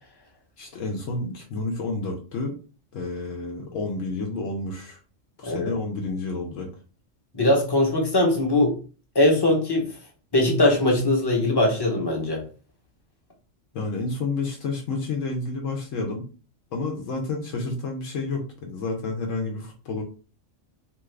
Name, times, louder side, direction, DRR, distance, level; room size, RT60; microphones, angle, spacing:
voice 1, 0.6-2.6 2.9-5.0 5.4-6.7 13.7-16.2 16.7-20.0, left 3 dB, 75° left, 1 dB, 1.0 m, -30 dB
voice 2, 5.4-5.7 7.3-8.8 9.1-9.9 10.3-12.4, left 1 dB, 25° left, 0 dB, 0.7 m, -21 dB
2.8 x 2.3 x 3.2 m, 0.36 s
omnidirectional pair, 1.3 m